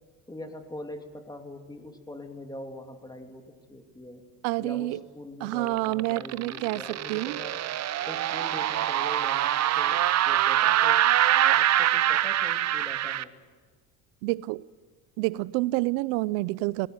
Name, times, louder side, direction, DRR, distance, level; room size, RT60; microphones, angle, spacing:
voice 1, 0.3-4.2 4.6-7.6 8.1-11.1 11.5-13.3, left 1 dB, 10° left, 3.0 m, -42 dB
voice 2, 4.4-5.0 5.4-6.8 7.1-7.4 14.2-14.6 15.2-16.9, right 21 dB, 85° right, 0.6 m, -28 dB
sound 1, 5.5-13.2, right 12 dB, 40° right, 0.7 m, -24 dB
19.5 x 18.0 x 9.6 m
supercardioid pair, 105°, 42 cm